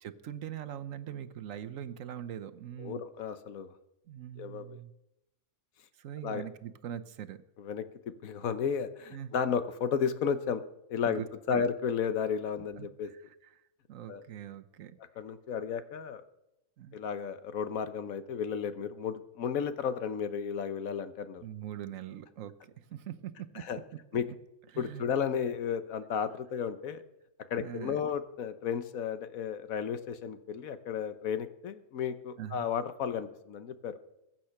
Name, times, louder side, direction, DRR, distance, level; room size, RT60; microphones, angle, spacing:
voice 1, 0.0-3.0 4.1-4.9 6.0-7.4 9.1-9.3 11.0-11.7 12.8-13.5 13.9-15.0 16.8-17.0 21.4-23.6 23.9-24.0 24.7-25.0 27.6-28.0 32.4-32.7, right 10 dB, 70° right, 11 dB, 1.1 m, -42 dB
voice 2, 2.8-3.7 4.4-4.8 6.2-6.4 7.6-7.8 8.2-10.6 10.9-13.1 14.1-14.2 15.2-16.2 16.9-21.4 23.5-23.8 24.1-24.2 24.8-27.0 27.5-33.9, left 7 dB, 80° left, 11 dB, 1.3 m, -33 dB
21.5 x 7.6 x 5.9 m, 0.88 s
omnidirectional pair, 1.5 m